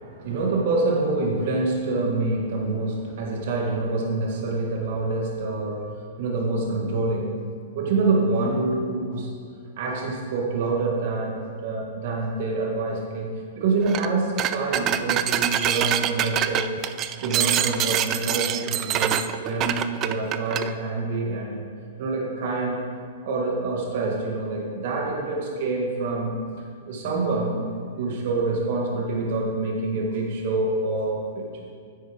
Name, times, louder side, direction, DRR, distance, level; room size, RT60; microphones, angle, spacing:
voice 1, 0.0-5.9 6.2-7.4 7.7-9.3 9.8-11.4 11.6-16.7 17.2-21.6 22.0-22.8 23.2-26.4 26.9-27.7 28.0-31.5, right 3 dB, 50° right, -1 dB, 1.6 m, -26 dB
sound 1, 13.9-14.1 14.4-20.7, right 11 dB, 25° right, 0.4 m, -25 dB
9.7 x 8.5 x 5.1 m, 2.2 s
hypercardioid pair, 160°, 0 cm